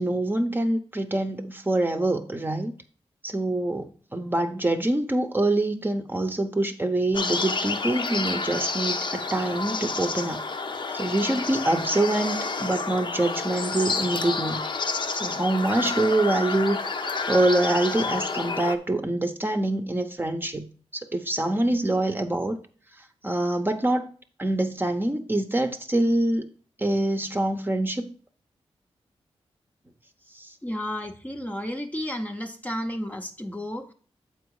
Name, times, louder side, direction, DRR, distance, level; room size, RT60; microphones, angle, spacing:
voice 1, 0.0-2.7 3.2-10.4 10.9-14.6 15.1-20.7 20.9-22.6 23.2-24.0 24.4-26.5 26.8-28.1 30.3-30.5, right 1 dB, 20° right, 5 dB, 0.8 m, -25 dB
sound 1, 7.1-18.8, left 3 dB, 45° left, 0.7 m, -29 dB
voice 2, 30.6-33.9, equal, 15° left, 4 dB, 0.7 m, -32 dB
7.0 x 4.7 x 4.7 m, 0.42 s
cardioid pair, 70°, 11 cm